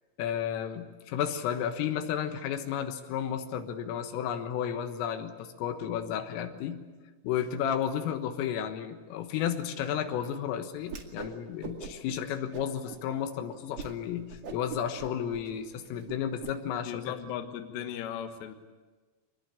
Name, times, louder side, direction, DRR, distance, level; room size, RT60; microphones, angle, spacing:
voice 1, 0.2-6.8 7.2-17.1, left 9 dB, 90° left, 6 dB, 4.0 m, -32 dB
Whoosh swoosh swish, 10.8-11.3 11.6-12.1 12.5-13.0 13.4-13.5 13.8-14.0 14.3-16.5, right 6 dB, 45° right, 2.4 m, -42 dB
voice 2, 16.8-18.5, left 9 dB, 70° left, 6 dB, 3.4 m, -37 dB
25.0 x 21.0 x 8.8 m, 1.3 s
omnidirectional pair, 5.7 m